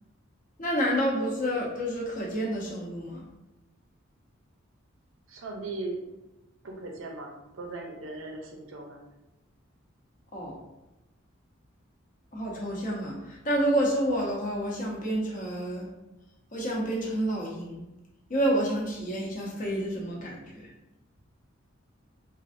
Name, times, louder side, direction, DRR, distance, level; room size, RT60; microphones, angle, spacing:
voice 1, 0.6-3.2 10.3-10.6 12.3-15.9 16.5-17.8 18.3-20.7, equal, 40° left, -2 dB, 0.8 m, -29 dB
voice 2, 5.3-6.0 6.6-9.0, right 2 dB, 70° right, 2 dB, 0.6 m, -38 dB
3.2 x 2.5 x 2.6 m, 0.99 s
head